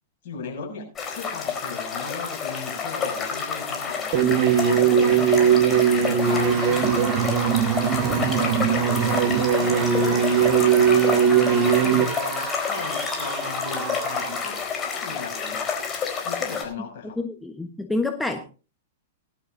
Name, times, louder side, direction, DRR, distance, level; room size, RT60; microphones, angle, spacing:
voice 1, 0.2-0.8 1.1-5.5 6.0-7.0 8.1-11.0 11.3-15.6 16.2-17.2, left 5 dB, 55° left, 0 dB, 7.0 m, -37 dB
sound 1, 1.0-16.6, left 6 dB, 25° left, 4.2 m, -29 dB
sound 2, 4.1-12.0, right 8 dB, 40° right, 1.6 m, -20 dB
Screaming / Cheering / Crowd, 6.2-14.7, right 5 dB, 25° right, 3.9 m, -34 dB
voice 2, 17.2-18.4, left 2 dB, 5° left, 5 dB, 1.2 m, -28 dB
19.5 x 11.5 x 2.7 m, 0.36 s
figure-of-eight pair, 105°, 0 cm